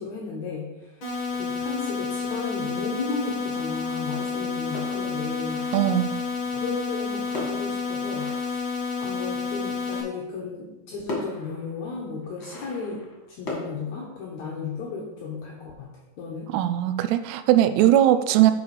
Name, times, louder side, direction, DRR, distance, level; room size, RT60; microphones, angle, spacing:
voice 1, 0.0-5.7 6.5-8.7 9.0-15.9 16.2-16.5, left 4 dB, 80° left, -3 dB, 1.6 m, -35 dB
sound 1, 1.0-10.0, left 5 dB, 65° left, 1.3 m, -30 dB
sound 2, 4.7-6.2 7.3-9.3 10.5-10.6 11.1-13.7, left 2 dB, 45° left, 1.6 m, -38 dB
voice 2, 5.7-6.2 16.5-18.5, right 12 dB, 80° right, 10 dB, 2.5 m, -20 dB
7.9 x 5.1 x 4.8 m, 1.0 s
omnidirectional pair, 4.9 m